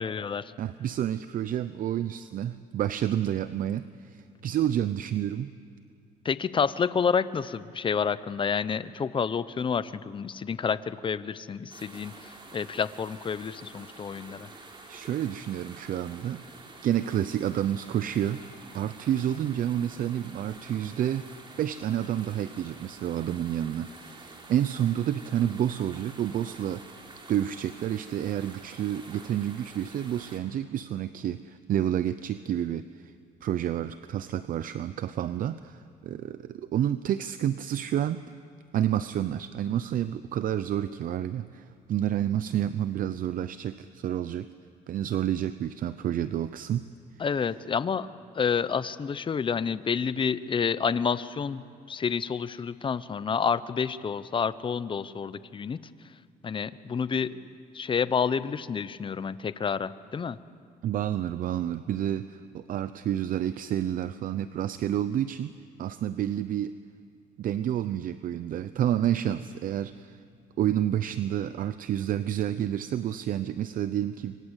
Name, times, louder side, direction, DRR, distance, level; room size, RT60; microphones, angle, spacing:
voice 1, 0.0-0.5 6.2-14.5 47.2-48.1 48.3-51.6 51.9-55.8 56.4-60.4, left 6 dB, 30° left, 15 dB, 0.9 m, -29 dB
voice 2, 0.6-5.5 14.9-16.4 16.8-18.4 18.7-21.3 21.6-33.1 33.4-38.2 38.7-44.5 44.9-46.9 60.8-65.5 65.8-66.7 67.4-70.2 70.6-74.4, right 11 dB, 55° right, 13 dB, 0.7 m, -29 dB
sound 1, 11.7-30.4, right 3 dB, 30° right, 3.8 m, -48 dB
27.0 x 24.5 x 8.2 m, 2.3 s
cardioid pair, 110°, 17 cm